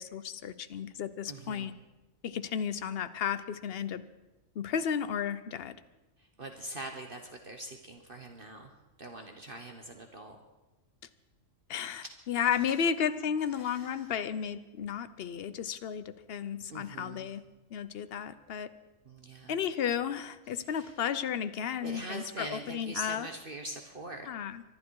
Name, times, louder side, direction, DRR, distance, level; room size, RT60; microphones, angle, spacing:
voice 1, 0.0-1.7 2.2-4.0 4.5-5.8 11.7-17.4 17.7-18.7 19.5-23.3 24.2-24.6, left 8 dB, 55° left, 13 dB, 0.9 m, -33 dB
voice 2, 1.3-1.7 6.2-8.7 9.0-10.4 13.6-14.1 16.7-17.3 19.0-19.5 20.7-20.9 21.8-24.3, right 1 dB, 45° right, 4 dB, 1.3 m, -43 dB
24.5 x 11.5 x 4.7 m, 1.1 s
omnidirectional pair, 1.4 m